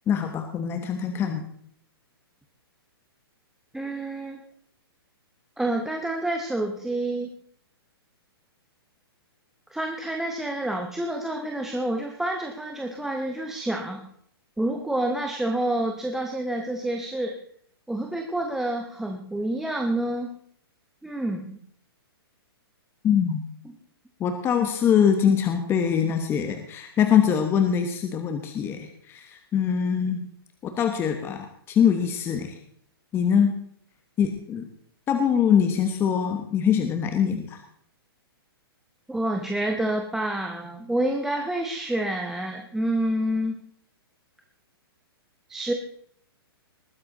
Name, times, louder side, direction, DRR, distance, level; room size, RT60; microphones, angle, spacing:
voice 1, 0.1-1.4 23.0-23.4 24.2-30.3 30.6-32.5 33.1-33.6 34.2-34.7 35.1-37.6, left 8 dB, 20° left, 6 dB, 1.2 m, -23 dB
voice 2, 3.7-4.4 5.6-7.3 9.7-14.0 14.6-17.3 17.9-20.4 21.0-21.6 39.1-43.6 45.5-45.7, right 1 dB, 5° right, 2 dB, 1.0 m, -28 dB
20.0 x 9.7 x 4.0 m, 0.64 s
hypercardioid pair, 150°, 13 cm